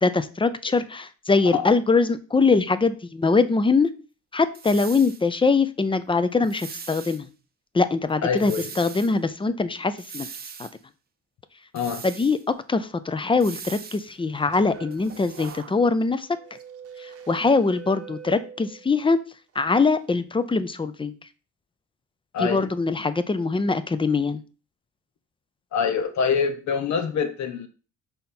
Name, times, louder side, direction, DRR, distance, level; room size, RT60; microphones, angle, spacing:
voice 1, 0.0-3.9 4.3-7.3 7.7-8.5 8.8-10.3 10.6-10.7 12.0-12.4 12.7-16.3 17.3-19.2 19.6-21.1 22.4-24.4, left 4 dB, 15° left, 0.6 m, -22 dB
sound 1, 4.5-5.2 6.4-7.2 8.4-9.1 10.0-10.7 11.8-12.4 13.4-14.1 14.9-15.6, right 6 dB, 30° right, 0.7 m, -40 dB
voice 2, 8.2-8.7 11.7-12.0 22.3-22.7 25.7-27.7, left 6 dB, 65° left, 0.9 m, -25 dB
sound 2, 14.1-19.1 19.5-19.9, right 7 dB, 50° right, 1.0 m, -44 dB
5.7 x 4.1 x 4.3 m
cardioid pair, 90°, 30 cm